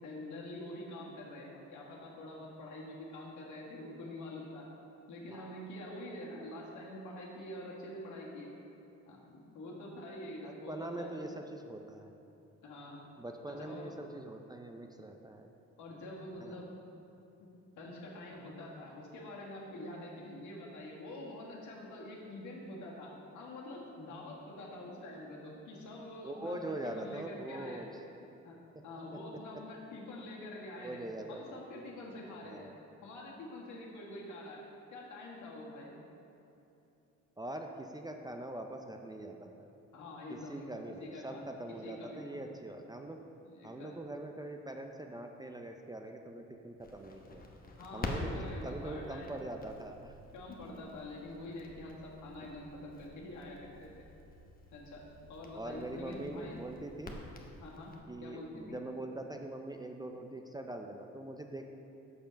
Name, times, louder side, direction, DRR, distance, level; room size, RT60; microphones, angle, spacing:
voice 1, 0.0-4.7 5.1-8.5 9.1-11.2 12.6-13.1 13.6-13.9 15.8-16.7 17.8-27.8 28.4-28.6 28.8-32.7 33.0-34.6 34.9-35.9 39.9-41.5 41.8-42.5 43.4-43.9 47.8-49.3 50.3-54.1 54.7-56.6 57.6-57.9 58.2-58.8, left 1 dB, 75° left, -3 dB, 1.7 m, -46 dB
voice 2, 5.3-5.6 10.4-12.1 13.2-15.5 16.4-16.6 26.2-27.9 30.8-31.6 32.4-32.8 37.4-39.7 40.3-43.2 43.6-47.4 47.9-50.1 55.5-57.1 58.1-61.6, right 1 dB, 15° right, 4 dB, 0.4 m, -43 dB
Crackle, 46.8-58.0, left 2 dB, 30° left, 0.9 m, -46 dB
6.8 x 5.6 x 5.1 m, 2.8 s
cardioid pair, 90°, 30 cm